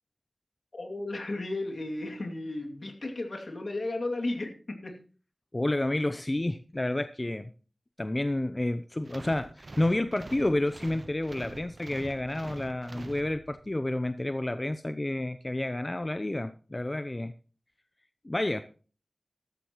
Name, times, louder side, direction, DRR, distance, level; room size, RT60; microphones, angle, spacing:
voice 1, 0.7-5.0, left 2 dB, 70° left, 3 dB, 2.5 m, -34 dB
voice 2, 5.5-7.5 8.0-17.3 18.2-18.6, left 1 dB, 35° left, 11 dB, 0.6 m, -30 dB
sound 1, 9.1-13.8, right 2 dB, 60° right, 0.7 m, -45 dB
14.0 x 13.0 x 3.0 m, 0.39 s
wide cardioid pair, 45°, 0 cm